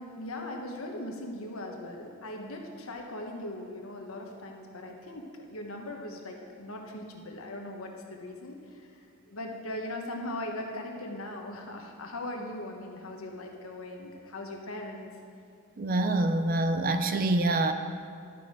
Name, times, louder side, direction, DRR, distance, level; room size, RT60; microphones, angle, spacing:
voice 1, 0.0-9.0 9.3-15.1, left 1 dB, 75° left, 2 dB, 1.2 m, -39 dB
voice 2, 15.8-17.7, right 2 dB, 40° right, 8 dB, 0.5 m, -26 dB
12.0 x 6.2 x 4.8 m, 2.4 s
head